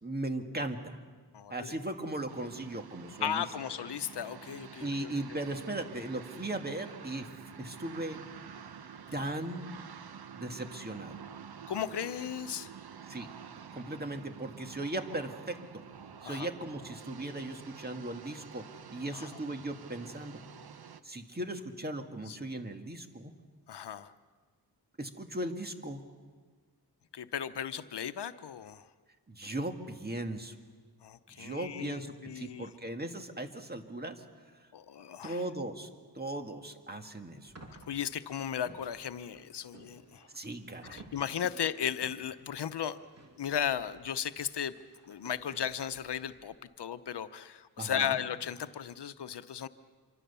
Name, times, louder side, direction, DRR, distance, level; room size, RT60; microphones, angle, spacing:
voice 1, 0.0-1.0 1.5-3.5 4.8-7.3 7.6-8.2 9.1-9.7 10.3-11.2 13.1-13.3 13.7-15.6 16.2-20.4 21.0-23.3 25.0-26.0 29.3-30.6 31.3-34.2 35.2-35.9 36.2-37.5 40.3-41.0 47.8-48.2, right 1 dB, 25° right, 5 dB, 2.0 m, -38 dB
voice 2, 1.3-1.7 3.2-5.2 9.2-9.4 11.7-12.7 16.2-16.5 19.1-19.3 22.3-22.4 23.7-24.1 27.1-28.9 31.0-32.7 34.7-35.4 37.7-40.3 40.8-43.0 43.4-44.7 45.1-49.7, left 9 dB, 80° left, 12 dB, 0.9 m, -36 dB
sound 1, 2.3-21.0, right 7 dB, 65° right, 1.0 m, -49 dB
sound 2, 37.5-46.6, right 2 dB, 40° right, 2.9 m, -57 dB
27.0 x 24.5 x 6.9 m, 1.5 s
wide cardioid pair, 115°, 40 cm